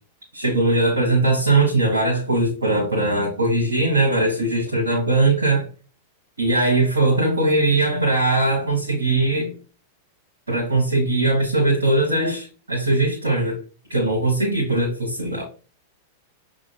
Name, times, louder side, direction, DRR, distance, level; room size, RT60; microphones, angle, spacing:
voice 1, 0.3-5.7 6.4-9.5 10.5-13.6 13.9-15.4, right 2 dB, 80° right, 1.4 m, -20 dB
6.2 x 2.7 x 2.9 m
figure-of-eight pair, 95°, 0 cm